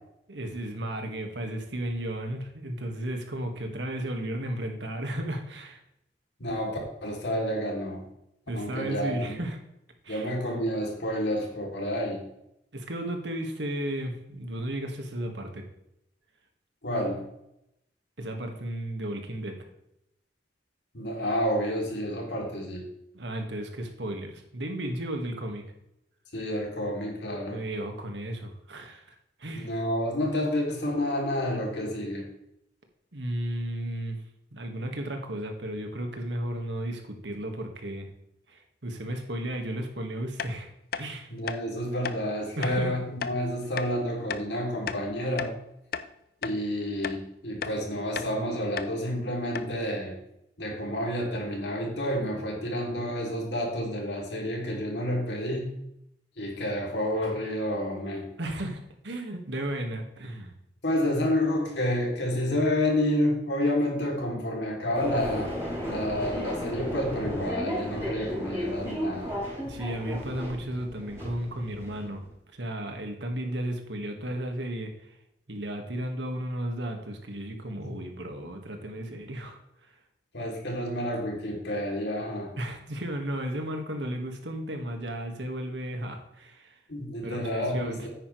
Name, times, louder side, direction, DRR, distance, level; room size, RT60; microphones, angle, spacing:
voice 1, 0.3-5.8 8.5-9.6 10.0-10.3 12.7-15.7 18.2-19.6 23.1-25.6 27.5-29.7 33.1-34.2 34.5-38.1 38.5-40.7 40.9-41.3 42.6-43.0 58.4-60.5 69.6-72.2 72.5-75.2 75.5-80.0 82.6-86.8 87.2-88.1, right 1 dB, 90° right, 4 dB, 1.8 m, -34 dB
voice 2, 6.4-8.0 8.5-9.4 10.1-12.2 16.8-17.2 20.9-22.9 26.3-27.6 29.6-32.3 41.3-45.5 46.4-50.2 50.6-55.7 56.4-58.3 60.8-65.5 65.8-69.3 77.8-77.9 80.3-82.5 86.9-88.1, left 1 dB, 75° left, 0 dB, 3.1 m, -29 dB
sound 1, 40.4-40.5 40.9-41.1 41.4-41.6 42.0-42.2 42.6-42.8 43.2-43.3 43.8-43.9 44.3-44.5 44.9-45.6 45.9-46.1 46.4-46.6 47.0-47.2 47.6-47.8 48.1-48.3 48.8-48.9 49.2-49.3 49.5-49.7, left 6 dB, 55° left, 0.6 m, -34 dB
sound 2, 64.9-72.3, equal, 15° right, 3.9 m, -34 dB
10.0 x 9.0 x 3.3 m, 0.82 s
head